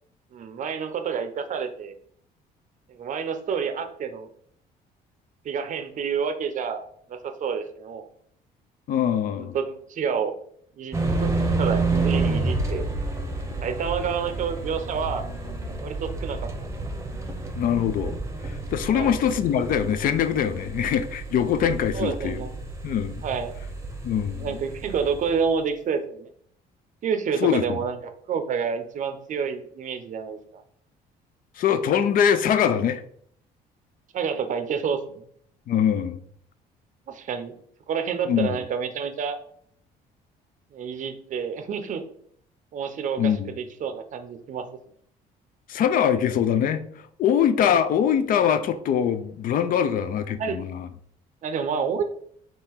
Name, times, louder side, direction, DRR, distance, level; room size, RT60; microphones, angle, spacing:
voice 1, 0.3-1.9 2.9-4.3 5.4-8.1 9.4-10.3 10.8-11.3 11.6-12.9 13.6-15.3 15.8-16.5 18.9-19.2 21.9-22.5 23.2-23.5 24.4-26.3 27.0-30.6 34.1-35.2 37.1-37.5 37.9-39.4 40.7-42.0 42.7-44.6 49.8-49.9 50.4-50.6 51.4-52.0, right 6 dB, 50° right, 0.6 m, -29 dB
voice 2, 8.9-9.6 17.5-18.2 18.4-22.4 22.8-23.2 24.0-24.5 27.4-27.8 31.6-33.0 35.7-36.2 38.3-38.6 43.2-43.5 45.7-50.9, left 8 dB, 55° left, 0.4 m, -23 dB
sound 1, 10.9-25.4, right 3 dB, 20° right, 0.7 m, -30 dB
3.7 x 2.8 x 4.4 m
cardioid pair, 110°, 17 cm